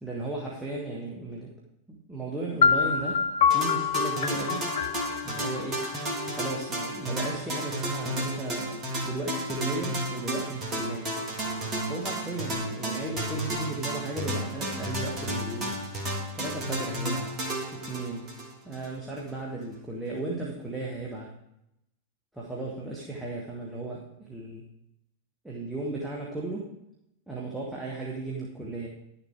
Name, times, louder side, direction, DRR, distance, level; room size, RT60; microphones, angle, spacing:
voice 1, 0.0-1.5 1.9-3.2 3.5-4.7 5.2-5.9 6.3-11.1 11.9-15.8 16.3-17.3 17.7-18.3 18.7-21.3 22.3-24.7 25.4-26.7 27.3-28.9, right 2 dB, 5° right, -5 dB, 1.8 m, -35 dB
sound 1, 2.6-6.5, left 6 dB, 60° left, 0.6 m, -26 dB
sound 2, 3.5-18.9, right 1 dB, 30° right, 2.6 m, -32 dB
11.5 x 7.2 x 4.8 m, 0.84 s
figure-of-eight pair, 90°, 0 cm